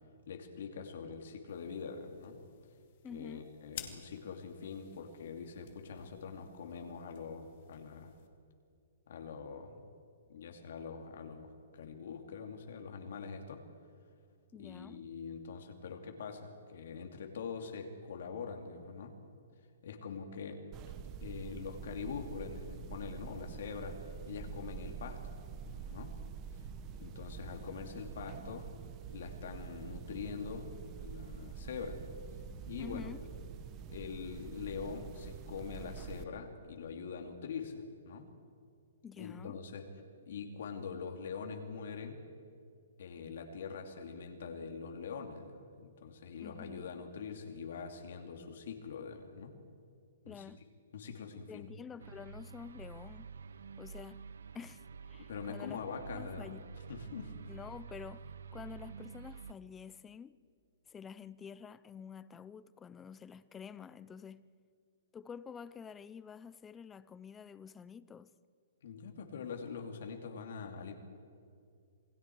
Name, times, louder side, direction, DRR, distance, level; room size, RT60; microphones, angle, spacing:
voice 1, 0.3-2.4 3.1-8.1 9.1-9.8 10.3-13.6 14.6-19.1 19.8-20.6 20.9-21.0 21.2-24.0 24.2-25.3 25.7-26.1 27.0-28.7 29.1-30.7 31.0-32.0 32.6-33.1 33.9-38.3 39.2-39.8 40.3-42.2 43.0-49.5 50.2-50.5 50.9-51.7 55.3-56.5 56.9-57.3 68.8-70.9, left 6 dB, 60° left, 2.8 m, -44 dB
sound 1, 1.5-8.3, left 10 dB, 45° left, 2.3 m, -54 dB
voice 2, 3.0-3.5 14.5-15.0 32.8-33.2 39.0-39.6 46.4-46.8 50.3-50.7 51.5-53.3 53.8-54.3 54.5-54.8 55.1-55.8 56.1-56.7 57.5-60.4 60.9-64.5 65.1-68.3, left 7 dB, 10° left, 0.5 m, -48 dB
sound 2, 20.7-36.2, right 7 dB, 25° right, 0.9 m, -46 dB
sound 3, 52.0-59.5, right 5 dB, 85° right, 0.9 m, -49 dB
28.0 x 21.0 x 4.7 m
hypercardioid pair, 160°, 0 cm